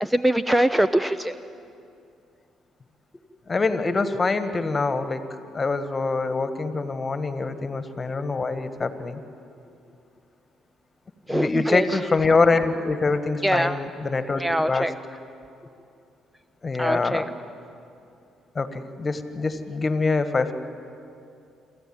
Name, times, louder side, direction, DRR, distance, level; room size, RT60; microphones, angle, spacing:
voice 1, 0.0-1.3 11.3-12.0 13.4-13.8 14.4-14.9 16.8-17.2, right 1 dB, 5° right, 13 dB, 0.7 m, -23 dB
voice 2, 3.5-5.3 5.5-9.2 11.3-14.4 14.7-14.9 16.6-17.3 18.5-20.5, left 3 dB, 30° left, 10 dB, 1.7 m, -24 dB
27.0 x 14.0 x 9.0 m, 2.6 s
hypercardioid pair, 50°, 0 cm